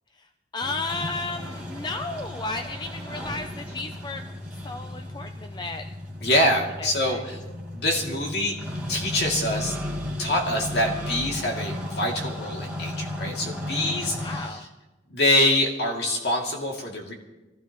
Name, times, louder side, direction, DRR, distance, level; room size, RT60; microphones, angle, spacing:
voice 1, 0.5-4.2 4.6-5.8 6.8-7.2 14.2-14.6, left 3 dB, 25° left, 6 dB, 0.5 m, -33 dB
sound 1, 0.6-14.5, left 1 dB, 5° right, 3.5 m, -34 dB
voice 2, 6.2-7.4 7.7-8.6 8.9-9.8 10.2-14.7 15.1-17.1, left 1 dB, 60° left, 0 dB, 2.6 m, -25 dB
23.5 x 15.5 x 3.1 m, 1.1 s
head